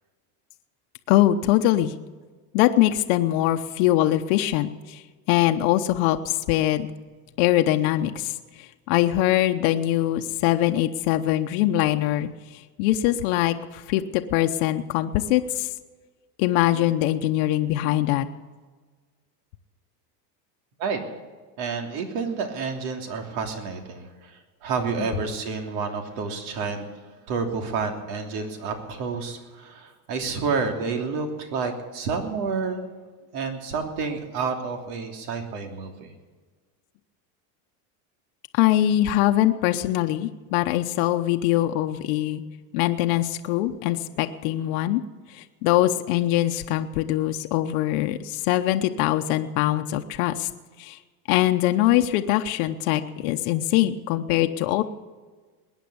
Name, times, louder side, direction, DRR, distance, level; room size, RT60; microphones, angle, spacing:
voice 1, 1.1-1.9 2.5-5.0 5.3-6.9 7.4-8.3 8.9-12.3 12.8-15.7 16.4-18.3 38.5-42.4 42.7-45.0 45.3-50.5 50.8-51.0 51.3-54.8, left 14 dB, 65° left, 6 dB, 1.0 m, -22 dB
voice 2, 21.6-26.9 27.3-32.9 33.3-36.1, right 5 dB, 75° right, 4 dB, 3.2 m, -29 dB
21.0 x 9.4 x 7.0 m, 1.4 s
supercardioid pair, 130°, 46 cm